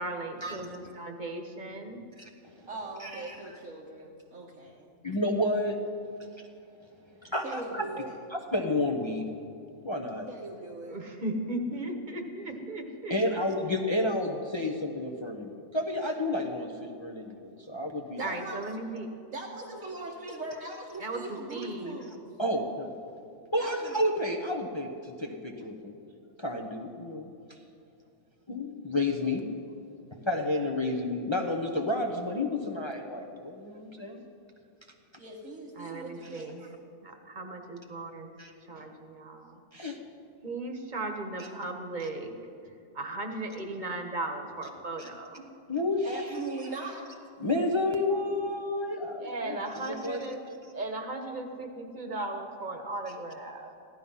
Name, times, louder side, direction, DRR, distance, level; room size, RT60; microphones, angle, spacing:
voice 1, 0.0-2.0 10.9-13.1 18.2-19.1 21.0-21.2 21.5-22.0 35.8-36.7 37.0-38.3 38.6-39.6 40.4-42.4 42.9-45.4 49.2-50.4 50.7-53.7, right 2 dB, 35° right, 5 dB, 1.4 m, -36 dB
voice 2, 2.2-2.5 3.0-3.6 5.0-5.8 7.2-7.8 8.3-9.3 9.8-10.3 13.1-18.4 22.4-22.9 23.5-25.9 26.4-27.3 28.5-29.4 30.3-34.2 38.4-38.5 39.7-40.0 45.0-45.1 45.7-46.2 47.4-50.2, left 1 dB, 25° left, 1 dB, 0.9 m, -31 dB
voice 3, 2.7-4.9 7.4-8.2 10.3-11.0 18.2-18.7 19.3-22.3 23.6-23.9 35.2-36.5 45.7-47.0, right 2 dB, 80° right, -4 dB, 1.8 m, -40 dB
15.5 x 12.0 x 5.6 m, 2.7 s
omnidirectional pair, 1.3 m